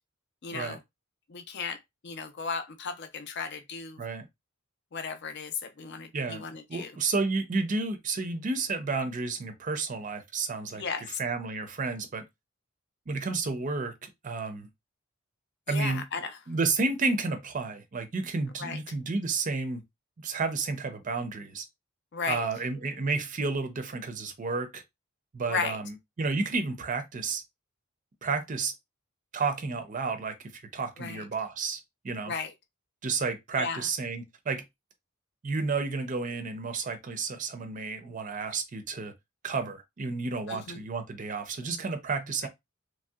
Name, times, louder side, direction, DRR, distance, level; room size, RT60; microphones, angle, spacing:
voice 1, 0.4-0.8 1.3-4.0 4.9-6.9 10.7-11.2 15.7-16.3 18.6-18.8 22.1-22.4 25.5-25.8 31.0-31.2 32.3-32.5 33.5-33.8 40.5-40.8, left 5 dB, 55° left, 0.5 m, -35 dB
voice 2, 6.7-10.8 11.2-12.2 13.1-14.7 15.7-16.0 16.5-19.8 20.2-21.6 22.3-24.8 25.3-27.4 28.2-28.7 29.3-31.8 32.0-32.3 33.0-34.6 35.4-39.1 39.4-42.5, right 4 dB, 40° right, 0.5 m, -31 dB
3.1 x 2.6 x 2.3 m
head